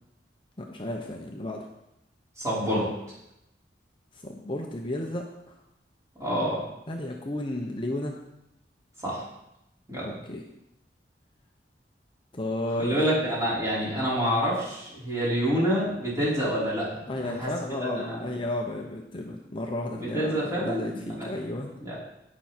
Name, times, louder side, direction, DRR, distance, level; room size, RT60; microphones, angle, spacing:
voice 1, 0.6-1.7 4.1-5.6 6.9-8.2 10.1-10.4 12.3-13.0 17.1-21.8, left 1 dB, 30° left, 1 dB, 1.0 m, -33 dB
voice 2, 2.4-2.9 6.2-6.6 9.0-9.2 9.9-10.1 12.8-17.5 17.9-18.2 20.0-21.3 21.8-21.9, equal, 20° right, -7 dB, 5.0 m, -27 dB
17.5 x 6.3 x 4.4 m, 0.86 s
head